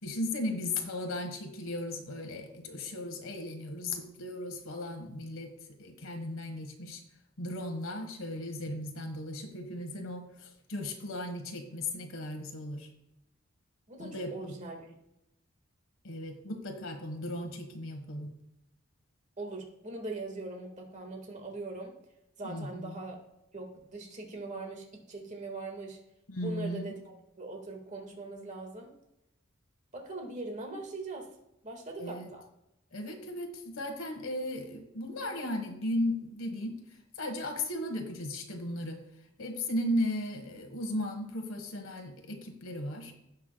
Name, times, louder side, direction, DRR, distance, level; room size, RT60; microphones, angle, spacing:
voice 1, 0.0-5.5 5.8-7.0 7.4-12.9 14.0-14.5 16.0-18.3 22.4-23.0 26.3-26.8 32.0-32.3 32.9-39.0 39.4-43.1, left 1 dB, 85° left, 4 dB, 1.3 m, -36 dB
voice 2, 13.9-14.9 19.4-21.9 22.4-23.2 23.5-26.0 26.4-28.9 29.9-31.3 31.6-32.4, right 2 dB, 35° right, 2 dB, 1.6 m, -41 dB
16.5 x 5.7 x 2.2 m, 0.86 s
head